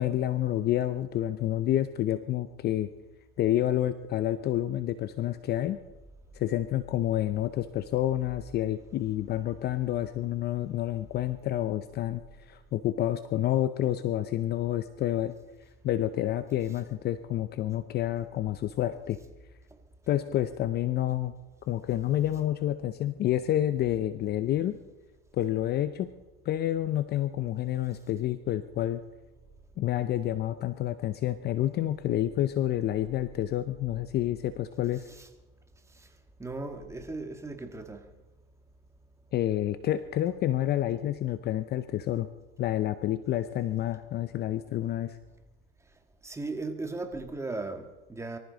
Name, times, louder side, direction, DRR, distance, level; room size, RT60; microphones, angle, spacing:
voice 1, 0.0-2.9 3.4-5.8 6.3-15.3 15.8-19.2 20.1-21.3 21.7-24.8 25.3-26.1 26.4-29.0 29.8-35.1 39.3-42.3 42.6-45.2, left 12 dB, 35° left, 0.7 m, -29 dB
voice 2, 36.4-38.1 46.2-48.4, right 3 dB, 10° right, 1.7 m, -37 dB
24.0 x 14.5 x 4.0 m
supercardioid pair, 125°, 30 cm